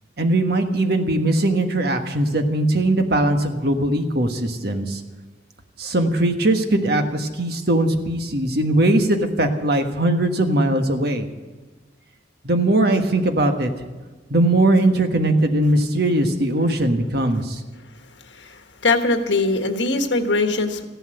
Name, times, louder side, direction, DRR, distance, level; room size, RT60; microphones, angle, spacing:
voice 1, 0.2-5.0 5.8-11.3 12.4-13.7 14.3-17.6, right 1 dB, 60° right, 5 dB, 1.5 m, -20 dB
voice 2, 18.4-20.8, left 3 dB, 85° left, 7 dB, 1.4 m, -21 dB
14.5 x 11.5 x 7.8 m, 1.3 s
head